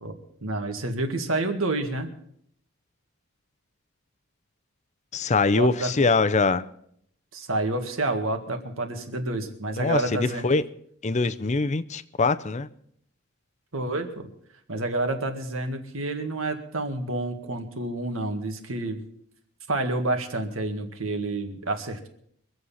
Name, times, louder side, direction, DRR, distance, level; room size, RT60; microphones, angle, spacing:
voice 1, 0.4-2.1 5.5-6.1 7.3-10.5 13.7-14.3 14.7-19.0 19.7-22.1, right 2 dB, 75° right, 1.9 m, -29 dB
voice 2, 5.1-6.6 9.8-10.6 11.0-12.7, left 3 dB, 35° left, 0.6 m, -23 dB
24.0 x 8.0 x 5.6 m
head